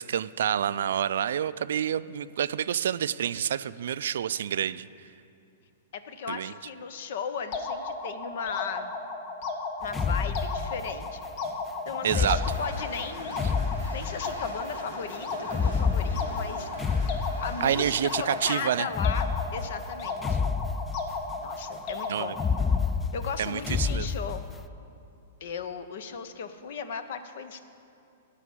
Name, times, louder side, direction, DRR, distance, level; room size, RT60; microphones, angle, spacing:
voice 1, 0.0-5.1 6.3-6.5 12.0-12.4 17.6-18.9 22.1-22.4 23.4-24.1, right 9 dB, 70° right, 16 dB, 0.3 m, -28 dB
voice 2, 5.9-8.9 9.8-11.3 11.9-13.4 13.9-16.7 17.4-20.5 21.4-22.4 23.1-24.5 25.4-27.6, left 6 dB, 65° left, 10 dB, 0.8 m, -36 dB
sound 1, 7.5-22.9, left 3 dB, 45° left, 1.1 m, -35 dB
sound 2, 9.8-11.2 12.0-14.5 15.5-18.0 18.9-21.4 22.3-24.6, left 5 dB, 15° left, 0.3 m, -29 dB
sound 3, 12.0-18.4, equal, 90° left, 2.4 m, -45 dB
13.5 x 5.0 x 8.5 m, 2.6 s
hypercardioid pair, 115°, 0 cm